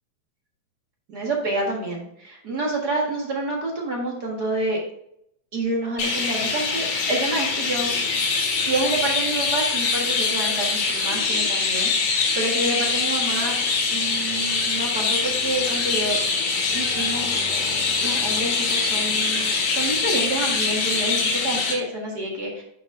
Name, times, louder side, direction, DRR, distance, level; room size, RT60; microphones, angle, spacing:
voice 1, 1.1-4.8 5.5-7.9 8.6-13.6 13.9-16.2 16.7-17.5 18.0-22.6, right 2 dB, 40° right, -1 dB, 1.7 m, -28 dB
Chirp tweet, 6.0-21.7, left 4 dB, 75° left, 3.1 m, -23 dB
9.3 x 6.3 x 2.7 m, 0.74 s
omnidirectional pair, 3.7 m